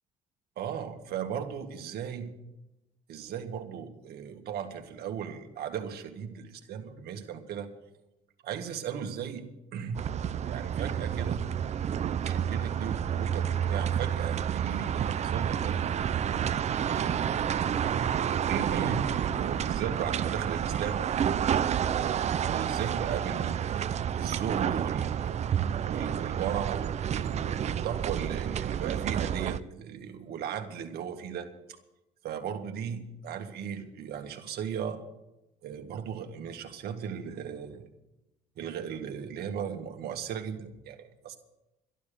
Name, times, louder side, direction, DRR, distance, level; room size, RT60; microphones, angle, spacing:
voice 1, 0.6-2.3 3.1-7.7 8.4-9.4 9.7-10.0 10.5-11.4 12.2-15.8 16.6-17.9 18.5-21.0 22.4-25.4 25.8-31.8 32.2-35.0 35.6-37.9 38.6-41.4, right 8 dB, 70° right, 5 dB, 1.8 m, -36 dB
sound 1, 10.0-29.6, right 9 dB, 40° right, 0.5 m, -30 dB
12.0 x 12.0 x 6.8 m, 0.95 s
cardioid pair, 110°, 17 cm